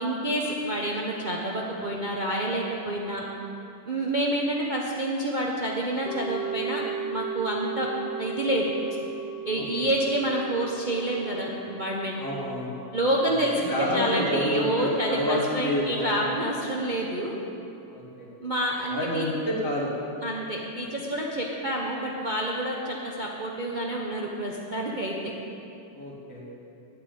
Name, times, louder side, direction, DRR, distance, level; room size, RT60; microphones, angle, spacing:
voice 1, 0.0-3.2 3.9-6.8 7.1-7.9 8.2-8.6 9.4-12.2 12.9-17.3 18.4-19.3 20.2-25.3, right 1 dB, 35° right, -3 dB, 0.9 m, -28 dB
sound 1, 6.1-16.3 16.6-16.7, right 6 dB, 75° left, 1.6 m, -38 dB
voice 2, 12.2-12.8 13.7-16.1 17.9-18.3 18.9-19.9 25.9-26.4, left 1 dB, 45° left, -5 dB, 2.9 m, -28 dB
9.9 x 8.8 x 8.8 m, 2.7 s
omnidirectional pair, 1.9 m